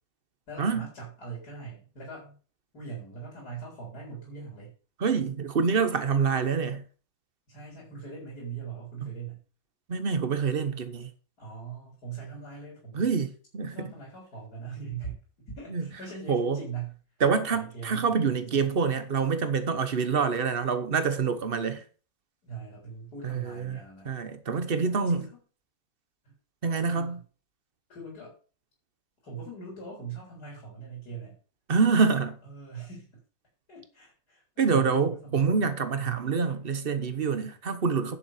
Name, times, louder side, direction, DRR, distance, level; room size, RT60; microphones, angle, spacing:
voice 1, 0.5-2.4 2.7-4.7 7.5-9.4 11.4-13.1 13.7-15.2 15.5-17.0 17.5-18.7 22.4-24.1 24.7-25.4 26.2-26.3 26.6-27.2 27.9-28.3 29.2-31.4 32.4-33.1 33.7-35.6 35.9-36.3, right 6 dB, 55° left, 4.5 m, -41 dB
voice 2, 5.0-6.8 9.0-9.1 9.9-11.1 12.9-13.9 15.7-15.8 16.3-16.6 17.2-21.8 23.2-23.8 24.0-25.2 26.6-27.2 31.7-32.4 34.6-38.2, right 5 dB, 35° right, 1.0 m, -26 dB
10.5 x 7.1 x 4.9 m
omnidirectional pair, 2.0 m